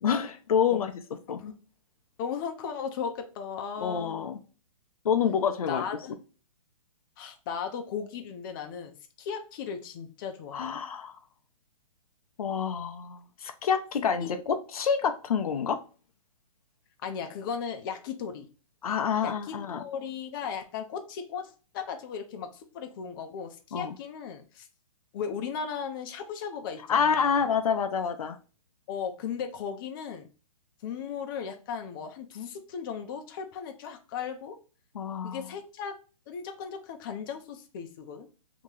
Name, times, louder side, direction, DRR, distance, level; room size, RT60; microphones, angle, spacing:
voice 1, 0.0-0.9 1.3-1.4 3.8-4.4 5.0-5.8 10.5-11.2 12.4-15.8 18.8-19.8 23.7-23.9 26.9-28.4 34.9-35.4, left 7 dB, 80° left, 8 dB, 0.6 m, -27 dB
voice 2, 2.2-4.2 5.7-6.1 7.2-10.8 14.2-14.3 17.0-18.5 19.2-24.7 25.1-27.4 28.9-30.3 30.8-34.6 35.2-35.9 36.3-38.3, left 7 dB, 35° left, 5 dB, 0.6 m, -36 dB
3.0 x 2.8 x 3.7 m, 0.35 s
hypercardioid pair, 150°, 18 cm